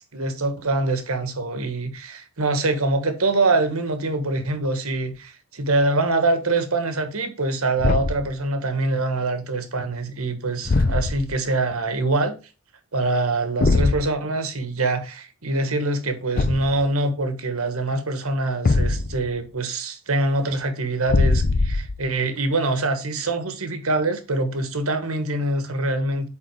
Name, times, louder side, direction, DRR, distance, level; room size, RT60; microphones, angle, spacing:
voice 1, 0.1-12.3 12.9-26.3, right 2 dB, 80° right, 1.4 m, -24 dB
Thump thud, 7.8-8.3 10.6-11.4 13.6-14.1 16.3-16.8 18.6-19.3 21.1-22.0, left 3 dB, 40° left, 0.5 m, -21 dB
8.7 x 3.9 x 4.7 m
head